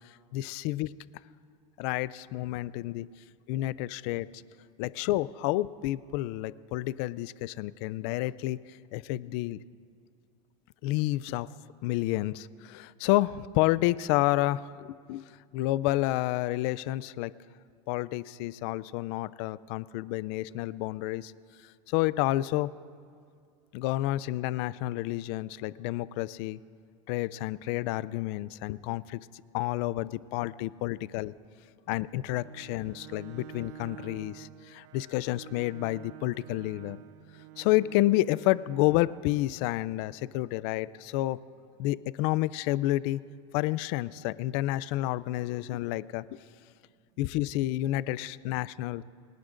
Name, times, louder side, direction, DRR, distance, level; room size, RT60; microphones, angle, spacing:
voice 1, 0.3-0.9 1.8-3.1 3.5-4.3 4.8-8.6 8.9-9.6 10.8-11.5 11.8-15.2 15.5-17.3 17.9-21.3 21.9-22.7 23.7-26.6 27.1-29.3 29.5-31.3 31.9-37.0 37.6-41.4 41.8-43.2 43.5-46.4 47.2-49.0, left 17 dB, 55° left, 19 dB, 0.4 m, -30 dB
Bowed string instrument, 32.3-39.3, right 11 dB, 55° right, 0.6 m, -49 dB
voice 2, 40.2-40.7 41.0-41.1 46.7-47.2, right 9 dB, 90° right, 3 dB, 1.2 m, -73 dB
28.0 x 19.5 x 2.6 m, 2.2 s
supercardioid pair, 155°, 16 cm